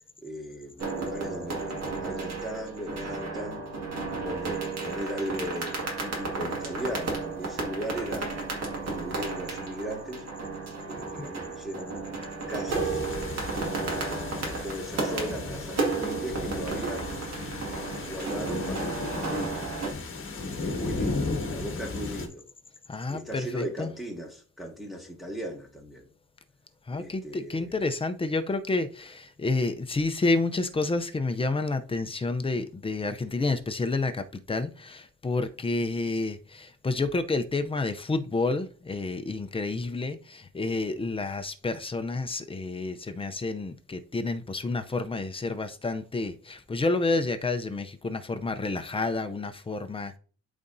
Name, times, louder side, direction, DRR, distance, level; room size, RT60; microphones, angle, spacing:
voice 1, 0.2-3.7 4.2-8.5 8.8-10.3 10.9-12.0 12.5-13.0 13.7-17.1 17.7-19.7 20.4-22.4 23.1-26.1 26.9-27.7, equal, ahead, 1.6 m, -38 dB
sound 1, 0.8-19.9, right 3 dB, 60° right, 2.0 m, -33 dB
sound 2, 12.7-22.3, left 3 dB, 45° left, 1.5 m, -35 dB
voice 2, 20.8-21.3 22.9-23.9 26.9-50.2, left 3 dB, 20° left, 0.5 m, -29 dB
12.0 x 4.1 x 2.6 m
wide cardioid pair, 155°, 29 cm